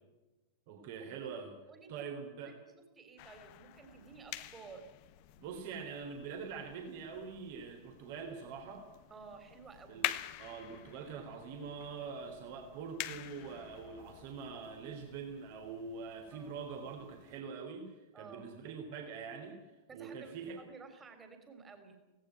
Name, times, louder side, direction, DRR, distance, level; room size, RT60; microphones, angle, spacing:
voice 1, 0.7-1.5 1.9-2.6 5.4-8.9 9.9-10.1 10.4-19.6 19.9-20.6, right 5 dB, 50° right, 3 dB, 3.6 m, -44 dB
voice 2, 1.7-2.1 2.5-4.8 9.1-10.1 16.3-16.6 18.1-18.5 19.9-22.0, right 5 dB, 20° right, 6 dB, 3.7 m, -53 dB
sound 1, 3.2-17.4, left 16 dB, 45° left, 1.3 m, -47 dB
18.0 x 18.0 x 9.2 m, 1.1 s
figure-of-eight pair, 90°, 0 cm